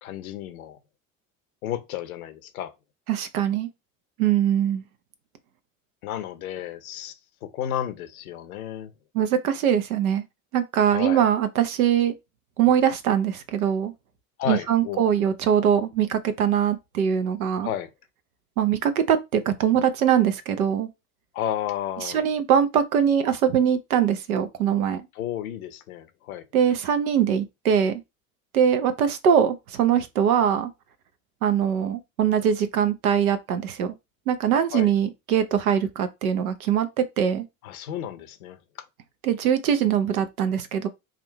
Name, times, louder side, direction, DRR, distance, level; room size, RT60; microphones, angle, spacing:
voice 1, 0.0-0.8 1.6-2.7 6.0-7.1 7.4-8.9 10.9-11.2 14.4-15.0 17.6-17.9 21.3-22.2 25.1-26.5 34.7-34.9 37.6-38.6, left 10 dB, 85° left, 0.8 m, -32 dB
voice 2, 3.1-3.7 4.2-4.8 9.1-10.2 10.5-12.1 12.6-13.9 14.5-17.7 18.6-20.9 22.0-25.0 26.5-28.0 28.5-30.7 31.4-33.9 34.3-37.4 39.2-40.9, right 8 dB, 85° right, 0.8 m, -22 dB
3.6 x 2.4 x 4.4 m
hypercardioid pair, 65°, 42 cm